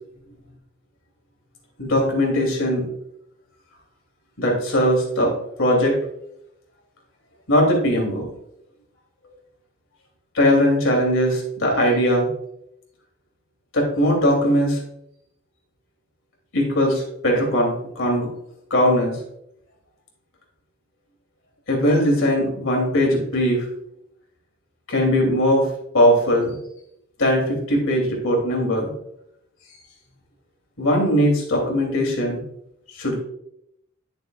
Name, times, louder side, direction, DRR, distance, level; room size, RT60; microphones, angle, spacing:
voice 1, 1.8-2.8 4.4-6.0 7.5-8.3 10.3-12.3 13.7-14.8 16.5-18.3 18.7-19.1 21.7-23.7 24.9-25.7 25.9-26.5 27.2-28.9 30.8-32.4 33.0-33.2, equal, 60° left, -1 dB, 2.8 m, -20 dB
11.5 x 6.5 x 2.3 m, 0.77 s
head